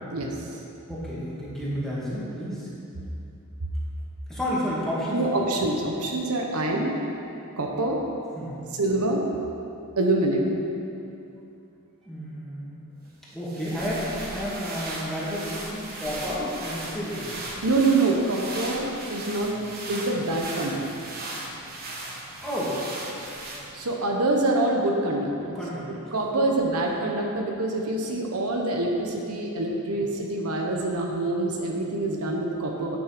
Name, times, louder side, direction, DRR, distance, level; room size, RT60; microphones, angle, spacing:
voice 1, 0.1-0.5 5.1-7.0 7.6-8.0 8.7-9.2 10.0-10.6 17.6-19.6 19.9-21.1 23.7-25.6 25.9-33.0, right 2 dB, 75° right, 0 dB, 1.0 m, -25 dB
voice 2, 0.9-2.7 4.3-5.4 8.4-8.7 12.1-12.8 13.3-17.3 18.3-18.4 22.4-22.8 25.4-26.1 26.3-26.5 29.9-30.0, equal, ahead, -8 dB, 2.2 m, -31 dB
sound 1, 13.3-23.9, right 2 dB, 45° right, 1.4 m, -37 dB
9.3 x 6.3 x 6.0 m, 2.7 s
head